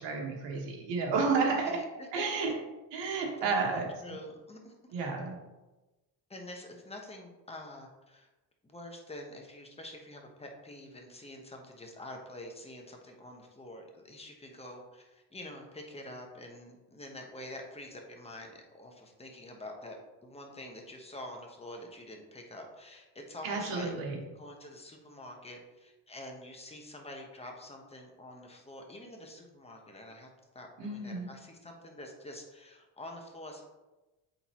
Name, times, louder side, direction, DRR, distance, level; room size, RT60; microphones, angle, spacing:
voice 1, 0.0-1.8 2.1-2.5 2.9-3.9 4.9-5.4 23.4-24.2 30.8-31.3, right 4 dB, 85° right, -1 dB, 1.7 m, -31 dB
voice 2, 1.3-2.5 3.4-4.9 6.3-8.3 8.6-23.9 24.3-30.3 30.5-33.7, left 1 dB, 15° left, 2 dB, 1.2 m, -47 dB
8.4 x 4.0 x 3.1 m, 1.1 s
cardioid pair, 105°, 43 cm